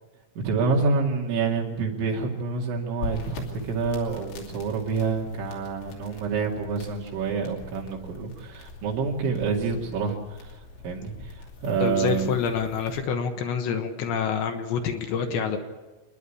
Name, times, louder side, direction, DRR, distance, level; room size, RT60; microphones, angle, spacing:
voice 1, 0.4-12.3, right 4 dB, 65° right, -1 dB, 4.6 m, -28 dB
sound 1, 3.0-13.0, left 3 dB, 85° left, 5.5 m, -42 dB
voice 2, 11.8-15.6, left 6 dB, 70° left, 5 dB, 3.3 m, -27 dB
27.5 x 11.0 x 9.9 m, 1.2 s
omnidirectional pair, 5.8 m